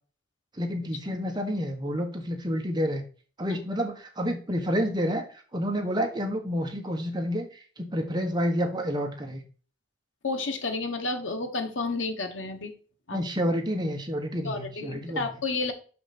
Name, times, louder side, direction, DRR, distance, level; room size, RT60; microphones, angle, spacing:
voice 1, 0.6-3.0 3.4-9.4 13.1-15.3, equal, 25° right, 2 dB, 1.4 m, -29 dB
voice 2, 10.2-12.7 13.1-13.2 14.4-15.7, left 3 dB, 90° left, 5 dB, 1.4 m, -31 dB
6.4 x 6.0 x 4.2 m, 0.40 s
head